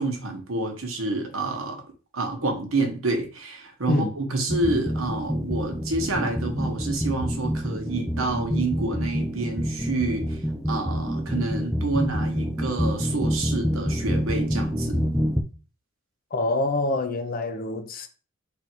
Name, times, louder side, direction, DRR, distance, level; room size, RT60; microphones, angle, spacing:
voice 1, 0.0-1.8 2.1-10.4 10.7-15.0, right 2 dB, 85° right, 1.0 m, -28 dB
sound 1, 4.5-15.4, equal, ahead, 0.3 m, -27 dB
voice 2, 16.3-18.1, left 2 dB, 45° left, 0.6 m, -26 dB
3.7 x 2.5 x 4.4 m
head